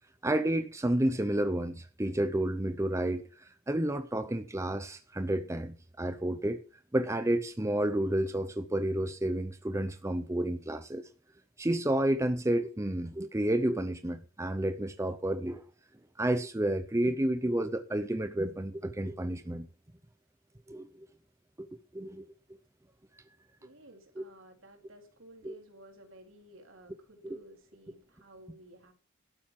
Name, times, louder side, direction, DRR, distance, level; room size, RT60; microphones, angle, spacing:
voice 1, 0.2-6.6 6.9-11.1 11.6-15.6 16.2-19.7 20.7-21.1 21.6-21.7 21.9-22.3 24.2-24.3 25.4-25.5, right 1 dB, 15° right, 0.6 m, -30 dB
voice 2, 23.6-28.9, right 2 dB, 70° right, 3.8 m, -54 dB
12.0 x 9.2 x 5.8 m
head